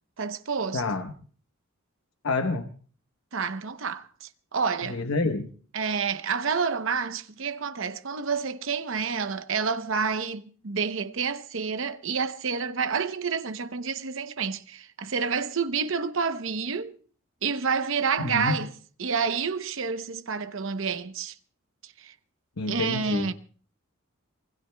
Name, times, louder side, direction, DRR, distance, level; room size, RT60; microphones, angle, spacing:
voice 1, 0.2-0.8 3.3-5.0 5.7-16.9 17.4-18.7 19.0-21.3 22.0-22.1 22.7-23.3, right 5 dB, 65° right, 0.8 m, -29 dB
voice 2, 0.7-1.1 2.2-2.7 4.9-5.5 18.2-18.5 22.6-23.3, left 3 dB, 80° left, 1.0 m, -28 dB
26.0 x 21.0 x 2.3 m
head